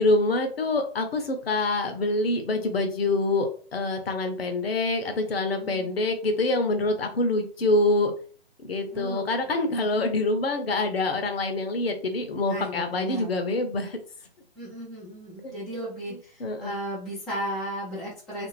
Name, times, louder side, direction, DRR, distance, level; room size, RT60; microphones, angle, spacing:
voice 1, 0.0-8.1 8.6-14.0 15.4-15.5 16.4-16.7, left 2 dB, 65° left, 6 dB, 0.8 m, -25 dB
voice 2, 5.3-5.9 8.9-9.9 12.5-13.3 14.6-18.5, equal, ahead, -9 dB, 0.4 m, -36 dB
2.5 x 2.5 x 3.1 m, 0.42 s
figure-of-eight pair, 130°, 32 cm